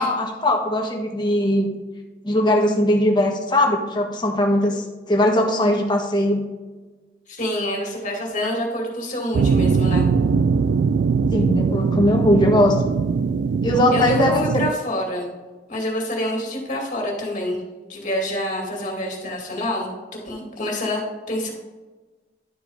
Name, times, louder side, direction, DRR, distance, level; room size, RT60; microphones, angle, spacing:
voice 1, 0.0-1.7 2.2-6.4 11.3-12.8 13.6-14.7, left 1 dB, 25° left, 1 dB, 1.4 m, -20 dB
voice 2, 7.3-10.1 13.9-15.3 15.7-17.6 17.9-21.0 21.3-21.5, left 1 dB, 45° left, 0 dB, 2.3 m, -27 dB
sound 1, 9.3-14.7, right 5 dB, 75° right, 0.3 m, -21 dB
11.5 x 4.7 x 4.0 m, 1.3 s
head